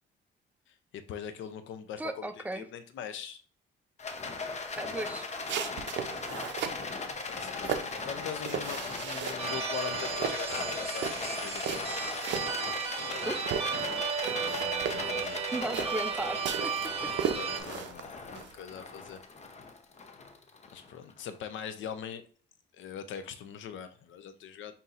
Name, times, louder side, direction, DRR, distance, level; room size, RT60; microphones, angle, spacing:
voice 1, 0.7-3.4 4.5-5.2 6.7-6.9 7.3-12.0 14.4-15.5 17.3-19.2 20.7-22.3 22.7-24.8, left 8 dB, 75° left, 0.5 m, -42 dB
voice 2, 2.0-2.6 4.8-5.3 13.2-13.8 15.5-17.3, right 2 dB, 10° right, 0.4 m, -37 dB
Rattle, 4.0-21.4, left 4 dB, 35° left, 0.7 m, -38 dB
sound 1, 5.4-6.8 7.3-9.6 9.9-13.2 13.4-18.6, right 8 dB, 65° right, 0.5 m, -36 dB
sound 2, 9.4-17.6, right 6 dB, 30° right, 0.9 m, -34 dB
5.4 x 2.8 x 2.4 m
cardioid pair, 90°, 20 cm